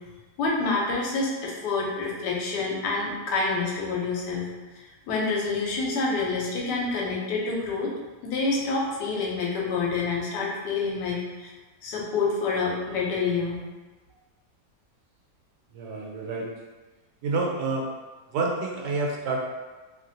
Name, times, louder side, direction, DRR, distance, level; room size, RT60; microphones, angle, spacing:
voice 1, 0.4-4.5 5.1-7.9 8.2-11.5 11.8-13.6, left 3 dB, 80° left, -3 dB, 1.2 m, -27 dB
voice 2, 15.7-16.5 17.2-17.9 18.3-19.4, right 3 dB, 80° right, 0 dB, 1.1 m, -28 dB
2.9 x 2.5 x 2.6 m, 1.2 s
omnidirectional pair, 1.8 m